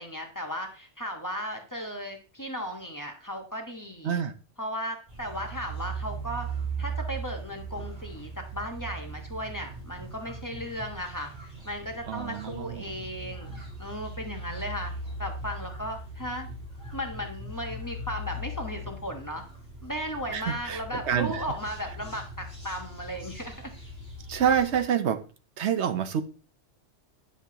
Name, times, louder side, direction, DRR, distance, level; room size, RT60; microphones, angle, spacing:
voice 1, 0.0-4.2 4.6-6.5 6.8-14.9 15.2-16.5 16.9-19.4 19.8-23.7, equal, 15° left, 1.2 m, -36 dB
sound 1, 5.1-24.8, right 2 dB, 25° right, 3.3 m, -39 dB
voice 2, 12.1-12.8 20.3-21.4 24.3-25.2 25.6-26.2, right 8 dB, 70° right, 1.0 m, -27 dB
10.0 x 6.8 x 2.9 m
omnidirectional pair, 1.2 m